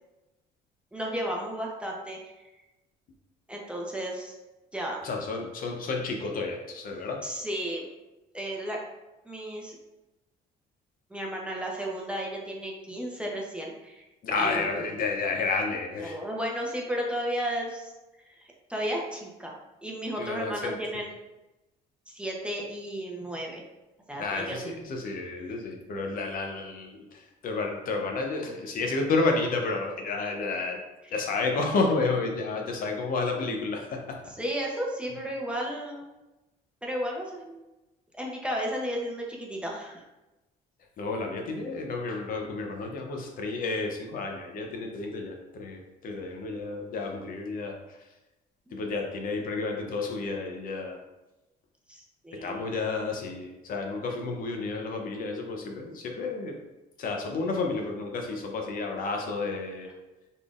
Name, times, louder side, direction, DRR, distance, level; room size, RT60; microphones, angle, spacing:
voice 1, 0.9-2.2 3.5-4.3 4.7-5.0 7.2-7.9 8.3-8.8 9.2-9.8 11.1-14.0 14.4-14.7 16.0-17.9 18.2-21.1 22.1-23.6 24.1-24.7 30.4-30.5 34.4-36.1 36.8-37.5 38.1-40.0 48.7-48.8 51.9-52.6, equal, 5° right, -2 dB, 0.7 m, -33 dB
voice 2, 5.0-7.2 14.2-16.2 20.2-20.8 24.2-30.8 31.1-34.2 41.0-48.1 48.7-51.0 52.3-56.6 57.0-59.9, left 3 dB, 55° left, 2 dB, 0.7 m, -31 dB
4.1 x 3.4 x 2.4 m, 1.0 s
cardioid pair, 110°, 17 cm